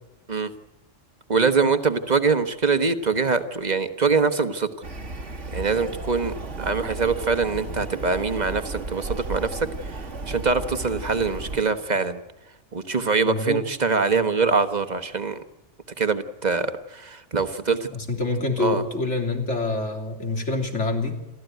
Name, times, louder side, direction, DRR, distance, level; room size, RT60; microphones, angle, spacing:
voice 1, 1.3-4.7 5.5-12.2 12.7-15.4 16.0-17.9 18.6-18.8, right 4 dB, 35° right, 9 dB, 1.4 m, -24 dB
sound 1, 4.8-11.6, right 2 dB, 80° right, 2.2 m, -34 dB
voice 2, 13.2-13.6 17.9-21.2, left 2 dB, 75° left, 3 dB, 3.6 m, -26 dB
28.5 x 13.5 x 9.2 m, 0.99 s
omnidirectional pair, 1.2 m